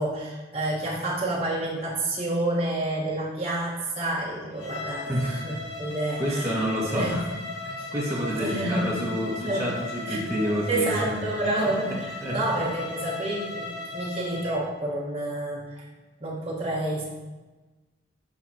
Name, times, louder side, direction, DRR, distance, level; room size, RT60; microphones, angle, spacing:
voice 1, 0.0-6.6 6.9-7.2 7.8-7.9 8.3-9.0 9.4-9.7 10.1-10.3 10.7-15.8 16.2-17.0, right 1 dB, 30° right, -6 dB, 1.5 m, -29 dB
Bowed string instrument, 4.5-14.6, left 2 dB, 80° left, 1.2 m, -37 dB
voice 2, 6.2-7.2 7.6-11.2 12.2-12.8, equal, 15° right, -6 dB, 1.6 m, -29 dB
11.0 x 3.9 x 2.9 m, 1.2 s
head